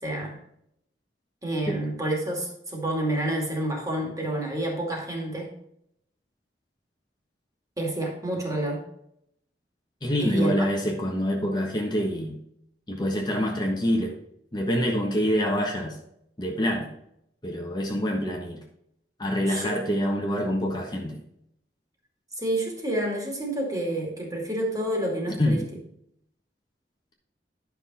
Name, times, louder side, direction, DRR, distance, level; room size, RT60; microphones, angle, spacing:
voice 1, 0.0-0.4 1.4-5.5 7.8-8.9 10.2-10.6 19.4-19.8 22.4-25.6, right 1 dB, 20° right, 0 dB, 2.4 m, -29 dB
voice 2, 10.0-12.4 12.9-14.2 14.5-16.0 16.4-16.9 17.4-18.6 19.2-21.2 25.3-25.7, equal, 25° left, 0 dB, 1.3 m, -26 dB
11.0 x 6.1 x 4.2 m, 0.74 s
head